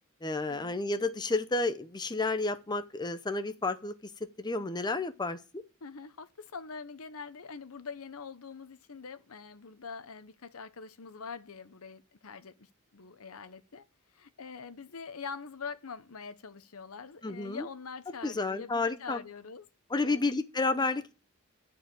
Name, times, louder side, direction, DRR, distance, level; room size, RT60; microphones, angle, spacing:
voice 1, 0.2-4.1 4.4-5.6 17.2-17.7 18.2-19.2 19.9-21.1, left 3 dB, 20° left, 0.7 m, -31 dB
voice 2, 5.8-13.8 14.1-19.7 19.9-20.2, left 5 dB, 75° left, 0.9 m, -44 dB
11.0 x 4.8 x 7.6 m
head